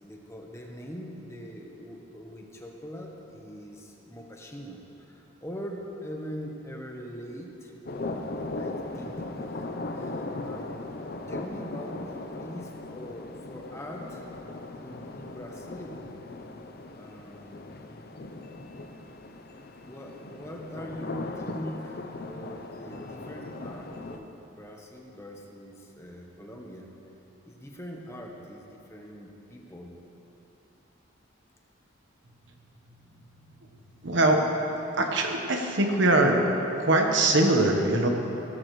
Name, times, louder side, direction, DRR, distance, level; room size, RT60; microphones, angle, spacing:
voice 1, 0.0-7.7 8.0-9.7 9.9-10.9 11.3-14.2 14.7-16.1 16.9-17.6 19.8-26.9 27.5-30.0 37.2-37.4, equal, 15° left, 0 dB, 1.1 m, -42 dB
sound 1, 7.9-24.2, left 2 dB, 50° left, 0.7 m, -38 dB
voice 2, 34.0-34.4 35.0-36.5 36.8-38.1, right 2 dB, 65° right, 2 dB, 1.2 m, -22 dB
16.5 x 13.5 x 3.2 m, 2.9 s
head